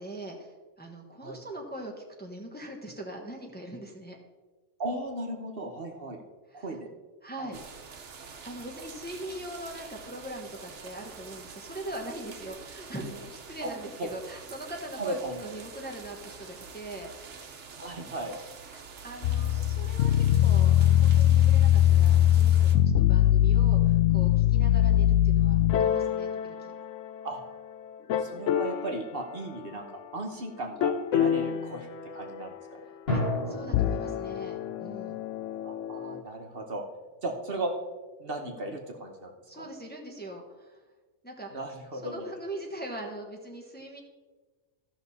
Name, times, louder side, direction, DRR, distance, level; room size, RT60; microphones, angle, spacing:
voice 1, 0.0-4.2 6.5-6.8 7.2-7.6 8.4-17.3 18.6-26.7 32.9-35.2 39.5-40.8 41.2-41.5 42.0-44.0, right 1 dB, 10° left, 0 dB, 1.0 m, -41 dB
voice 2, 4.8-6.2 6.5-6.9 7.4-7.6 13.6-13.7 14.0-14.1 15.0-15.5 17.8-18.4 27.2-27.4 28.2-29.9 30.1-32.5 35.6-36.8 37.2-37.7 38.2-39.3 39.6-39.7 41.5-42.2, right 1 dB, 50° right, 2 dB, 1.2 m, -36 dB
sound 1, 7.5-22.8, right 5 dB, 75° right, 1.2 m, -46 dB
sound 2, 19.2-27.5 28.1-29.0 30.8-32.5 33.6-36.2, left 11 dB, 90° left, 0.9 m, -23 dB
sound 3, 33.1-36.5, left 1 dB, 50° left, 2.4 m, -34 dB
14.5 x 6.1 x 4.2 m, 1.3 s
omnidirectional pair, 1.2 m